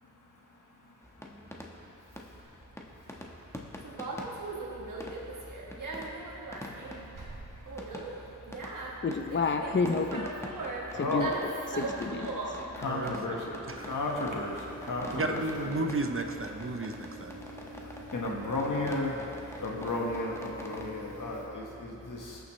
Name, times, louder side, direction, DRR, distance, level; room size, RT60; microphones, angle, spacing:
sound 1, 1.0-20.9, left 1 dB, 10° left, 1.3 m, -46 dB
Conversation, 2.4-14.3, right 2 dB, 90° right, 1.3 m, -39 dB
voice 1, 9.0-10.3 10.9-11.3 11.7-12.6, left 4 dB, 40° left, 6 dB, 0.6 m, -30 dB
voice 2, 10.9-11.3 12.8-14.5 14.9-15.8 18.1-19.1 19.6-22.4, left 2 dB, 80° left, -2 dB, 1.6 m, -33 dB
sound 2, 13.7-21.5, equal, 70° right, 2.3 m, -47 dB
voice 3, 15.1-17.4, right 2 dB, 45° right, 5 dB, 0.8 m, -33 dB
20.0 x 7.0 x 3.2 m, 3.0 s
cardioid pair, 55°, 31 cm